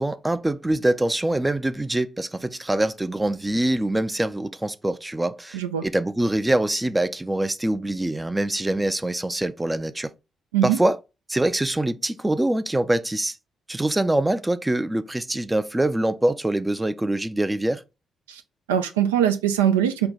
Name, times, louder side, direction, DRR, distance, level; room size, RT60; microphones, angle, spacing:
voice 1, 0.0-10.1 10.6-11.0 11.3-13.4 13.7-17.8, right 1 dB, 15° right, 0.4 m, -24 dB
voice 2, 5.5-5.9 10.5-10.8 18.3-18.4 18.7-20.1, right 10 dB, 85° right, 0.3 m, -21 dB
4.4 x 2.2 x 3.9 m
hypercardioid pair, 45°, 0 cm